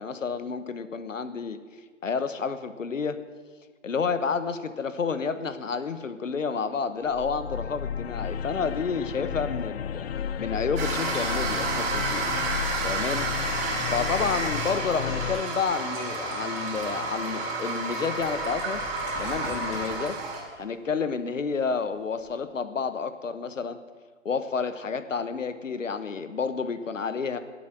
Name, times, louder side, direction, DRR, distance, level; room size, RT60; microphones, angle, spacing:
voice 1, 0.0-1.6 2.0-3.2 3.8-10.1 10.4-12.3 12.8-13.3 13.9-18.8 19.2-20.2 20.6-23.8 24.2-27.4, left 5 dB, 80° left, 11 dB, 1.2 m, -30 dB
sound 1, 7.1-15.4, left 8 dB, 55° left, 0.7 m, -33 dB
sound 2, 10.8-20.4, right 3 dB, 40° right, 4.3 m, -30 dB
sound 3, 17.7-20.8 21.3-22.3, left 2 dB, 30° left, 3.2 m, -44 dB
19.0 x 8.5 x 6.1 m, 1.5 s
figure-of-eight pair, 130°, 38 cm